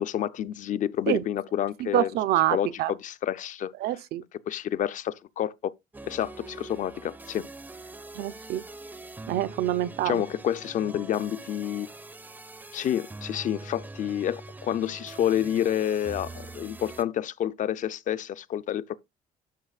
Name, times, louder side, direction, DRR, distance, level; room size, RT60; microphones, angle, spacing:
voice 1, 0.0-2.1 2.5-3.7 4.5-5.7 6.0-7.5 10.0-11.9 12.7-19.0, left 10 dB, 50° left, 0.5 m, -29 dB
voice 2, 1.8-2.9 3.8-4.2 8.1-8.6 9.3-10.2, right 13 dB, 70° right, 0.6 m, -26 dB
sound 1, 5.9-17.0, right 2 dB, 10° right, 0.5 m, -43 dB
12.0 x 5.7 x 2.4 m
cardioid pair, 115°, 17 cm